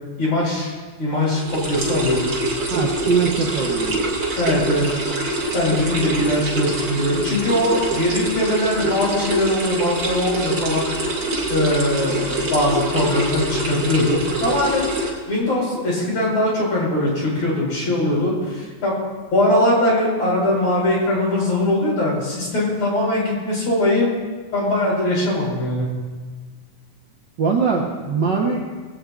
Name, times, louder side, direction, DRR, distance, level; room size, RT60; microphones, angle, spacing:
voice 1, 0.2-0.7 1.0-2.3 4.4-4.9 5.5-10.9 11.5-14.9 15.3-18.9 19.3-24.1 24.5-25.9, left 1 dB, 45° left, -4 dB, 5.8 m, -21 dB
sound 1, 1.2-15.1, right 1 dB, 35° right, 2.6 m, -25 dB
voice 2, 2.7-4.0 27.4-28.6, right 5 dB, 85° right, -3 dB, 1.0 m, -21 dB
19.5 x 16.5 x 2.5 m, 1.4 s
omnidirectional pair, 3.9 m